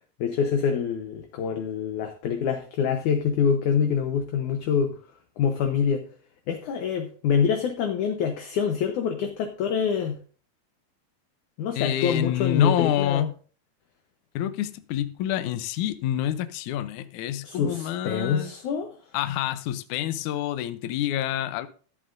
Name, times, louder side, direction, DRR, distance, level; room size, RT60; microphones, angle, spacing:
voice 1, 0.2-5.0 5.4-6.0 6.5-10.2 11.6-13.3 17.4-18.9, left 7 dB, 70° left, 2.0 m, -25 dB
voice 2, 11.8-13.3 14.4-18.5 19.1-21.7, left 12 dB, 85° left, 1.7 m, -28 dB
14.0 x 11.0 x 2.6 m
omnidirectional pair, 4.5 m